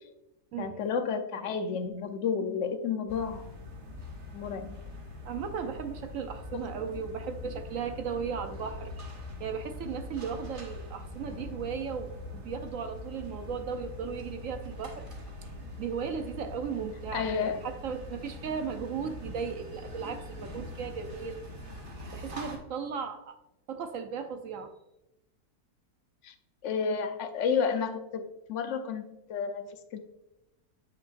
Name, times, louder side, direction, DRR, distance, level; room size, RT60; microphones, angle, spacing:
voice 1, 0.6-3.5 4.3-4.8 17.1-17.6 26.2-26.3 26.6-30.0, left 6 dB, 60° left, 7 dB, 0.9 m, -31 dB
sound 1, 3.1-22.6, left 2 dB, 35° right, 1.4 m, -43 dB
voice 2, 5.2-9.1 9.4-15.0 15.8-21.4 22.1-23.4 23.7-24.7, right 6 dB, 65° right, 7 dB, 0.9 m, -36 dB
9.1 x 5.4 x 2.5 m, 0.91 s
omnidirectional pair, 1.6 m